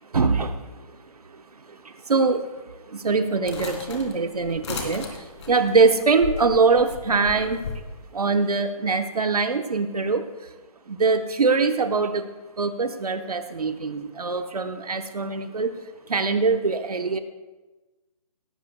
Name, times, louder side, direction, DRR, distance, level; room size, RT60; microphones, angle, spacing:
voice 1, 0.1-0.6 0.9-1.0 1.3-1.4 1.7-7.6 8.1-10.5 10.9-12.2 12.6-15.7 16.1-17.2, right 4 dB, 85° right, 7 dB, 1.2 m, -23 dB
sound 1, 3.5-7.8, left 4 dB, 50° left, 3.0 m, -35 dB
17.5 x 14.5 x 2.3 m, 1.2 s
hypercardioid pair, 160°, 19 cm